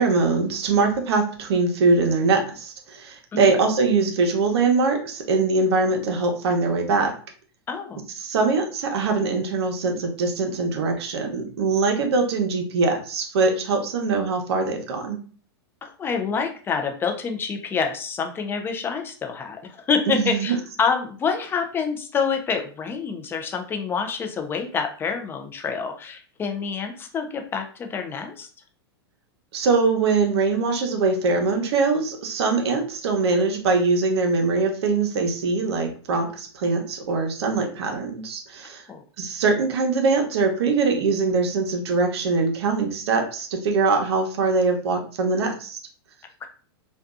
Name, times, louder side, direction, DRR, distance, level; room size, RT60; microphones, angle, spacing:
voice 1, 0.0-7.1 8.2-15.2 20.1-20.6 29.5-38.8 39.2-45.8, right 4 dB, 75° right, 3 dB, 0.7 m, -22 dB
voice 2, 7.7-8.0 15.8-28.5 38.9-39.0 46.4-46.5, left 5 dB, 15° left, 5 dB, 0.4 m, -27 dB
2.6 x 2.3 x 2.3 m, 0.41 s
hypercardioid pair, 130°, 14 cm